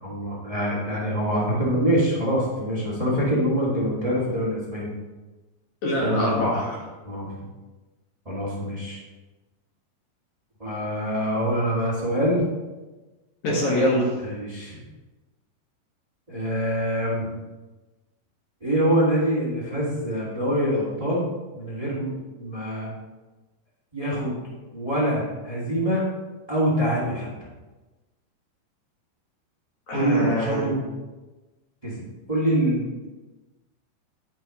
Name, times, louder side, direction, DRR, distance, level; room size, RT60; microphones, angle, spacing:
voice 1, 0.0-4.9 6.0-6.5 7.0-7.3 8.2-9.0 10.6-12.4 14.2-14.8 16.3-17.3 18.6-21.3 21.5-22.9 23.9-24.3 24.7-26.0 26.5-27.3 29.9-30.7 31.8-32.9, equal, 45° right, -6 dB, 0.4 m, -25 dB
voice 2, 5.8-6.9 13.4-14.1 29.9-30.7, left 1 dB, 55° left, -3 dB, 2.4 m, -24 dB
10.0 x 9.2 x 3.1 m, 1.2 s
omnidirectional pair, 5.0 m